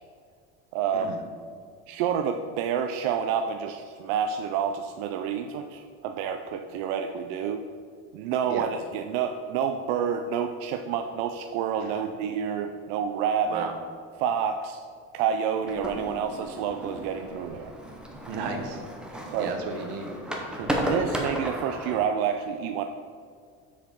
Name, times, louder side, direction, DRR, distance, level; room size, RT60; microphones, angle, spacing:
voice 1, 0.7-1.2 1.9-7.7 8.1-13.7 14.1-14.8 15.1-17.7 19.2-19.6 20.7-22.9, right 7 dB, 70° right, 6 dB, 0.5 m, -29 dB
sound 1, 15.7-22.0, right 1 dB, 5° right, 0.7 m, -34 dB
voice 2, 18.3-18.8 19.4-20.1 20.5-20.7, right 5 dB, 90° right, 4 dB, 1.2 m, -33 dB
7.0 x 4.9 x 5.3 m, 2.1 s
cardioid pair, 165°, 31 cm